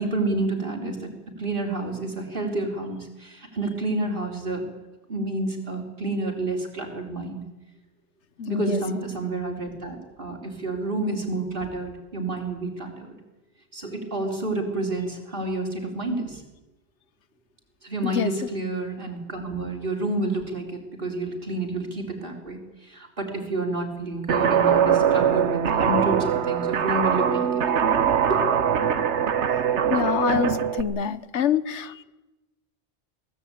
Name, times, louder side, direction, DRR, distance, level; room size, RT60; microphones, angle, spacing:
voice 1, 0.0-4.7 5.1-7.4 8.5-13.2 13.7-16.4 17.8-27.6 28.3-28.4, right 2 dB, 50° right, 2 dB, 4.1 m, -29 dB
voice 2, 8.4-8.8 18.0-18.3 29.9-32.0, left 7 dB, 90° left, 15 dB, 1.3 m, -25 dB
Guitar, 24.3-30.8, right 8 dB, 85° right, 1.4 m, -22 dB
23.0 x 17.5 x 8.7 m, 1.0 s
omnidirectional pair, 1.1 m